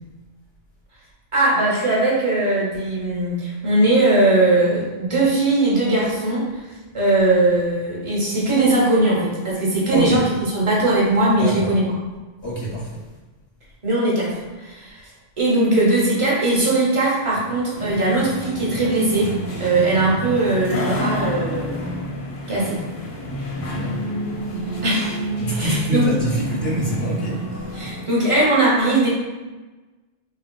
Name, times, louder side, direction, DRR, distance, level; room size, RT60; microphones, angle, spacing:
voice 1, 1.3-6.7 6.9-11.9 13.8-15.0 15.4-19.3 19.6-22.0 22.5-22.8 24.8-25.2 25.5-26.1 27.7-29.1, right 2 dB, 35° right, -6 dB, 0.8 m, -19 dB
voice 2, 9.9-10.2 11.4-11.7 12.4-13.0 23.6-24.0 25.4-27.4, equal, 75° left, -5 dB, 0.8 m, -24 dB
sound 1, 17.7-28.0, equal, 45° left, 0.4 m, -29 dB
3.2 x 2.5 x 2.2 m, 1.2 s
omnidirectional pair, 1.1 m